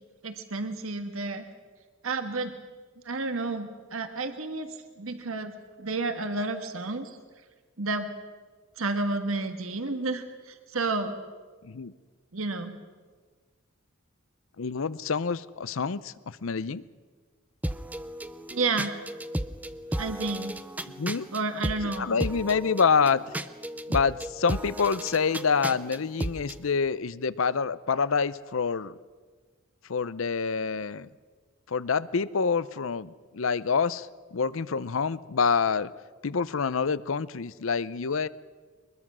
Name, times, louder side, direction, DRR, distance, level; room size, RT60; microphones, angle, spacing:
voice 1, 0.2-1.4 2.0-2.5 3.0-5.5 5.8-7.2 7.8-8.0 8.8-11.2 12.3-12.7 18.5-18.9 20.0-20.6 21.3-22.1, right 3 dB, 80° right, 8 dB, 1.4 m, -31 dB
voice 2, 14.6-16.8 21.0-21.3 22.0-23.2 23.9-28.9 29.9-31.1 31.7-35.9 36.2-38.3, left 5 dB, 70° left, 18 dB, 0.6 m, -27 dB
sound 1, 17.6-26.6, right 1 dB, 10° right, 0.5 m, -34 dB
22.5 x 21.0 x 6.2 m, 1.4 s
head